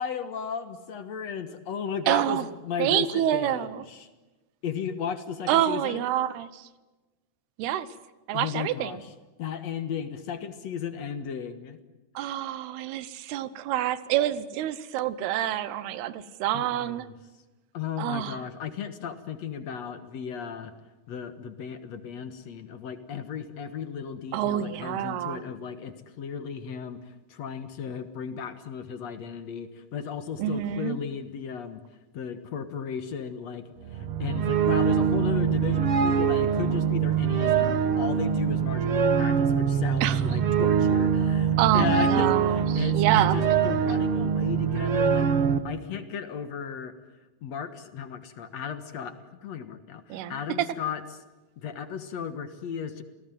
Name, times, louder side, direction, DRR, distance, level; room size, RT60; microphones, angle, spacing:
voice 1, 0.0-4.1 4.6-6.1 8.3-9.1 9.4-11.8 16.5-17.1 17.7-20.7 21.1-31.8 32.1-33.6 33.9-45.3 45.6-46.9 47.4-49.2 49.4-51.0 51.6-53.0, left 7 dB, 60° left, 10 dB, 2.0 m, -35 dB
voice 2, 2.1-2.5 2.8-3.8 5.5-6.7 7.6-7.9 8.3-9.0 12.2-17.1 18.0-18.4 24.3-25.4 30.4-31.0 40.0-40.3 41.6-43.4 50.1-50.7, right 12 dB, 85° right, 16 dB, 3.0 m, -27 dB
sound 1, 33.8-45.6, right 7 dB, 60° right, 1.5 m, -24 dB
28.0 x 18.5 x 9.2 m, 1.2 s
omnidirectional pair, 4.5 m